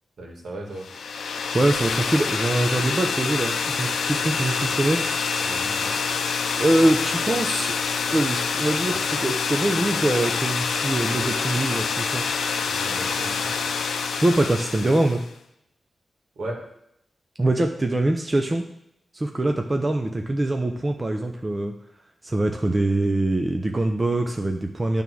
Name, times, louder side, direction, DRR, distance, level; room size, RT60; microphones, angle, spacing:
voice 1, 0.2-0.8 5.4-6.0 12.7-13.3 16.4-16.6, right 1 dB, 75° right, -1 dB, 2.0 m, -36 dB
sound 1, 0.8-15.3, left 5 dB, 90° left, 0.6 m, -26 dB
voice 2, 1.2-5.1 6.6-7.8 8.1-12.3 14.2-15.2 17.4-18.6 19.1-21.7 22.2-25.0, right 1 dB, 25° right, 3 dB, 0.6 m, -23 dB
9.2 x 3.5 x 6.1 m, 0.77 s
wide cardioid pair, 90°, 0 cm